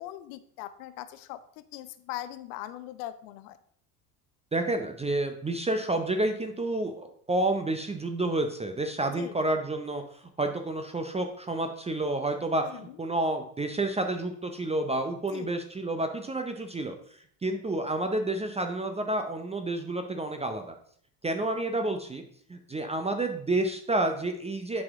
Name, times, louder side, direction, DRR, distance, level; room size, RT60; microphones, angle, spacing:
voice 1, 0.0-3.6 9.1-9.4 12.6-12.8 15.3-15.5, left 14 dB, 65° left, 13 dB, 0.8 m, -40 dB
voice 2, 4.5-20.7 21.2-22.2 22.5-24.8, right 2 dB, 15° right, 6 dB, 0.6 m, -30 dB
8.5 x 4.2 x 3.6 m, 0.63 s
hypercardioid pair, 70°, 48 cm